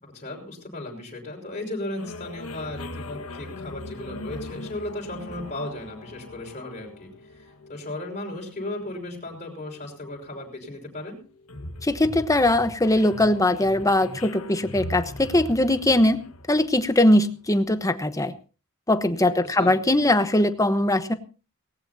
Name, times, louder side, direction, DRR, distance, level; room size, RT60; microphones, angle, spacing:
voice 1, 0.0-7.1 7.4-11.2 19.4-19.8, left 1 dB, 35° left, -1 dB, 5.5 m, -36 dB
sound 1, 2.0-17.4, left 1 dB, 75° left, 1.6 m, -40 dB
voice 2, 11.8-16.2 16.5-18.3 18.9-21.1, left 1 dB, 15° left, 10 dB, 1.0 m, -21 dB
18.5 x 18.0 x 2.8 m, 0.34 s
head